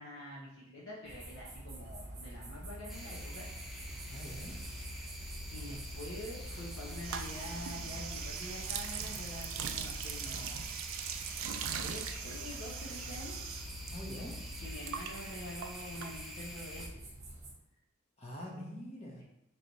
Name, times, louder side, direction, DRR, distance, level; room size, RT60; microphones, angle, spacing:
voice 1, 0.0-3.5 3.9-4.0 5.5-10.9 11.7-13.4 14.6-17.1, left 1 dB, 70° left, -6 dB, 0.8 m, -46 dB
sound 1, 1.0-17.5, right 1 dB, 35° right, 1.0 m, -47 dB
sound 2, 2.9-16.9, equal, ahead, 0.5 m, -46 dB
voice 2, 4.1-4.5 13.9-14.4 18.2-19.2, equal, 30° left, -3 dB, 1.0 m, -44 dB
sound 3, 7.0-13.9 14.2-16.6, right 8 dB, 70° right, 0.3 m, -41 dB
3.2 x 3.0 x 4.0 m, 0.83 s
head